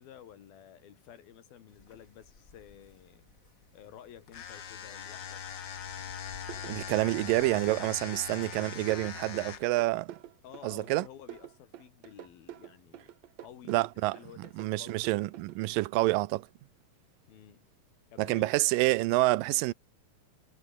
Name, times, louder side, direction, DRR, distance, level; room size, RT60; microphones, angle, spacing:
voice 1, 0.0-5.5 10.4-13.1 13.4-15.0 17.3-17.7 18.1-18.5, left 10 dB, 90° left, 4.1 m, -52 dB
Wind, 1.7-8.3, left 3 dB, 25° left, 3.3 m, -59 dB
sound 1, 4.3-9.8, left 8 dB, 55° left, 1.3 m, -41 dB
sound 2, 6.5-15.9, right 12 dB, 65° right, 2.1 m, -47 dB
voice 2, 6.7-10.2 10.6-11.0 13.7-14.1 14.6-16.5 18.2-19.7, right 19 dB, 80° right, 2.3 m, -28 dB
omnidirectional pair, 4.1 m